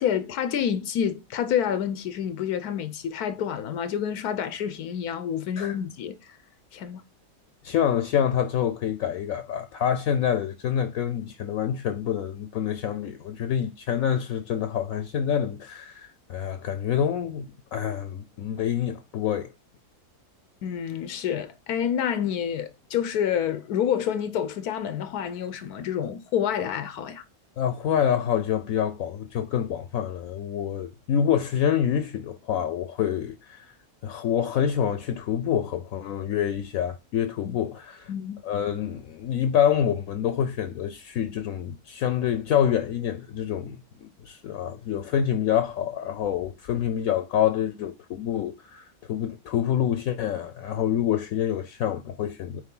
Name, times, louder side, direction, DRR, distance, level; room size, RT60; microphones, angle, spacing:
voice 1, 0.0-6.4 6.7-7.0 20.6-27.2 37.4-37.6 38.1-38.4, left 9 dB, 90° left, 1.2 m, -28 dB
voice 2, 7.6-19.5 27.6-33.7 34.0-38.1 38.4-52.6, left 9 dB, 70° left, 1.0 m, -27 dB
9.1 x 3.4 x 3.8 m
omnidirectional pair, 1.6 m